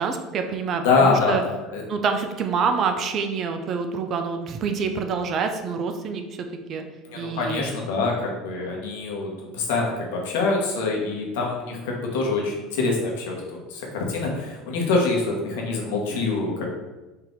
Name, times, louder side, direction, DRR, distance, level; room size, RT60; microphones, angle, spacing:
voice 1, 0.0-1.4 1.9-6.8 7.1-7.7, right 5 dB, 45° right, 6 dB, 0.5 m, -27 dB
voice 2, 0.8-1.4 1.7-1.8 7.1-16.7, left 3 dB, 75° left, -1 dB, 1.0 m, -25 dB
4.0 x 2.8 x 3.6 m, 1.1 s
hypercardioid pair, 75°, 0 cm